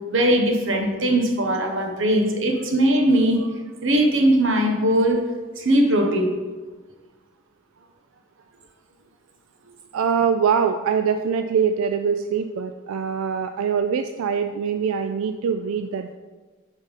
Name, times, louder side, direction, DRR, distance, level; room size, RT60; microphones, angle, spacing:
voice 1, 0.1-3.5 3.8-5.2 5.6-6.3, right 1 dB, 65° right, 3 dB, 1.0 m, -20 dB
voice 2, 9.9-16.2, right 6 dB, 85° right, 9 dB, 0.3 m, -23 dB
7.0 x 5.3 x 4.1 m, 1.3 s
head